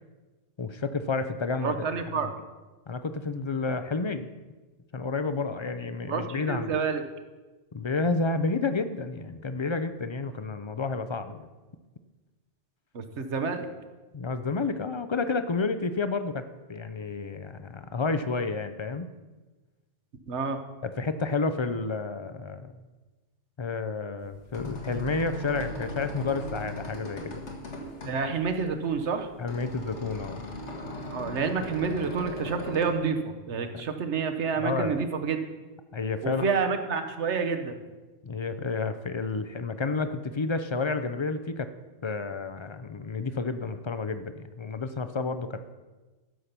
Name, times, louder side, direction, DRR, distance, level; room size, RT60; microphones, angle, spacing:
voice 1, 0.6-1.8 2.1-2.3 2.9-4.3 4.9-6.7 7.7-11.4 14.1-16.4 16.7-19.1 20.8-22.7 23.6-27.4 29.4-30.4 33.7-33.8 34.6-35.0 35.9-36.5 38.2-41.7 42.0-45.6, left 4 dB, 40° left, 10 dB, 0.4 m, -30 dB
voice 2, 1.6-2.3 6.1-7.0 12.9-13.7 20.3-20.6 28.1-29.3 31.1-35.4 36.2-37.7, right 5 dB, 75° right, 7 dB, 1.3 m, -29 dB
sound 1, 24.2-32.9, left 2 dB, 85° left, 2.0 m, -38 dB
12.5 x 5.8 x 6.7 m, 1.2 s
omnidirectional pair, 1.2 m